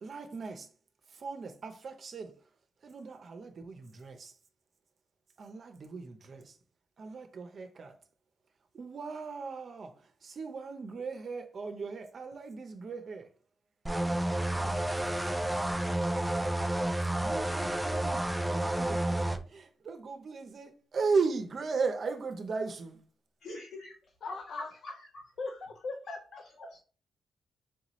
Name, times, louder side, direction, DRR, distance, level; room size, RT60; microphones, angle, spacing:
voice 1, 0.0-0.7 1.1-2.4 2.8-4.3 5.4-6.6 7.0-8.0 8.7-13.3 17.2-23.0, right 4 dB, 45° right, 0.6 m, -37 dB
sound 1, 13.9-19.4, right 1 dB, 5° right, 0.4 m, -30 dB
voice 2, 14.6-15.2 24.2-24.7 25.4-26.4, left 3 dB, 55° left, 0.5 m, -41 dB
voice 3, 23.4-23.9 24.3-25.2 25.5-25.6 26.6-26.8, left 2 dB, 80° left, 2.1 m, -44 dB
4.7 x 2.7 x 3.0 m
wide cardioid pair, 135°, 0 cm